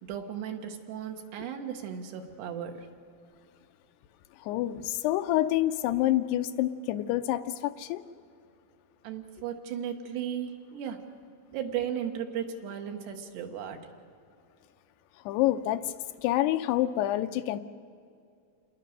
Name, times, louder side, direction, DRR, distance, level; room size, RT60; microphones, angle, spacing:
voice 1, 0.0-2.9 9.0-11.1 11.5-13.9, right 9 dB, 80° right, 5 dB, 3.6 m, -36 dB
voice 2, 4.4-8.0 15.3-15.9 16.2-17.6, left 14 dB, 80° left, 10 dB, 2.7 m, -27 dB
28.0 x 20.0 x 6.7 m, 2.4 s
omnidirectional pair, 4.9 m